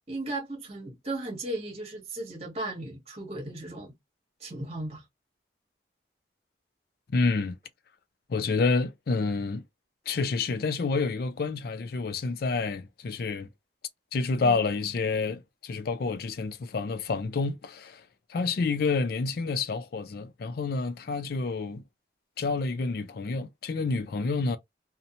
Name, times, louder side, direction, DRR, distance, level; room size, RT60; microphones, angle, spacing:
voice 1, 0.1-3.9 4.4-5.0 14.4-14.6, right 2 dB, 35° right, 1.0 m, -36 dB
voice 2, 7.1-7.6 8.3-9.6 10.1-13.5 14.1-18.0 18.3-21.8 22.4-24.6, left 4 dB, 55° left, 0.4 m, -28 dB
2.7 x 2.1 x 2.7 m
head